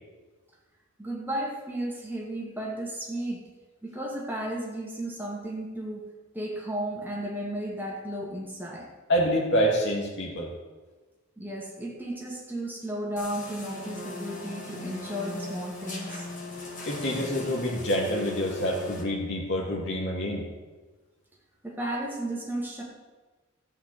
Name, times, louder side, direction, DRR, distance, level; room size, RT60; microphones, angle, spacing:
voice 1, 1.0-3.5 3.8-8.9 11.4-16.3 21.6-22.8, right 1 dB, 10° right, -2 dB, 2.5 m, -34 dB
voice 2, 9.1-10.5 16.9-20.4, equal, 55° left, -3 dB, 2.2 m, -27 dB
sound 1, 13.2-19.0, left 3 dB, 35° left, 2.1 m, -38 dB
13.5 x 5.9 x 8.4 m, 1.3 s
head